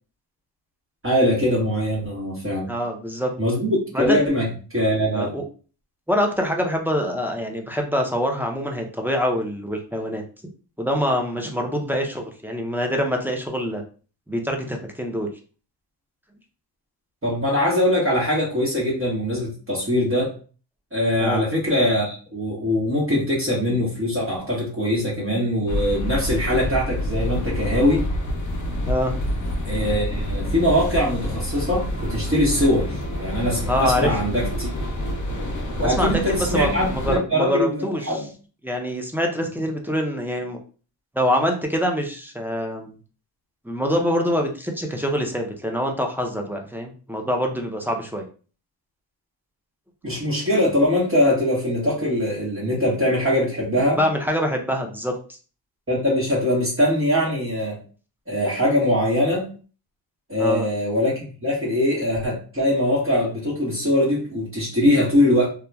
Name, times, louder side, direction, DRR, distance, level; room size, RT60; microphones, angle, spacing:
voice 1, 1.0-2.7 3.4-5.4 17.2-20.3 20.9-28.0 29.7-34.7 35.8-38.3 50.0-54.0 55.9-57.8 58.3-59.5 60.3-65.5, left 1 dB, 30° right, -5 dB, 1.1 m, -22 dB
voice 2, 2.7-3.3 3.9-4.3 5.1-5.4 6.1-10.2 10.8-13.8 14.3-15.3 21.2-21.4 28.9-29.1 33.7-34.1 35.8-38.2 38.6-40.6 41.2-43.0 43.6-48.2 54.0-55.1 60.4-60.7, equal, 5° right, 1 dB, 0.4 m, -25 dB
sound 1, 25.7-37.2, left 1 dB, 40° left, 0.7 m, -27 dB
2.9 x 2.3 x 2.2 m, 0.38 s
cardioid pair, 75°, 46 cm